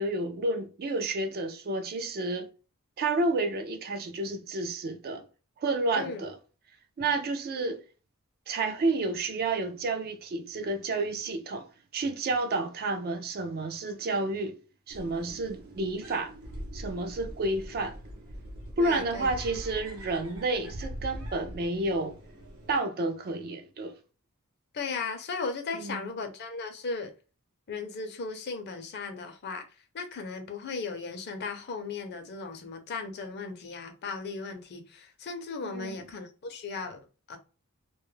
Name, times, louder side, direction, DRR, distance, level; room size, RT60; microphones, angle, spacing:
voice 1, 0.0-2.5 3.0-5.2 5.6-6.4 7.0-7.8 8.5-11.7 11.9-14.6 14.9-16.3 16.7-18.0 18.8-22.2 22.7-24.0 25.7-26.0 35.6-36.0, right 2 dB, 45° right, 0.4 m, -30 dB
sound 1, 14.9-22.8, equal, 70° right, 0.7 m, -42 dB
voice 2, 18.8-19.3 24.7-27.1 27.7-29.7 29.9-37.0 37.3-37.4, left 4 dB, 50° left, 0.5 m, -36 dB
2.2 x 2.0 x 3.1 m
head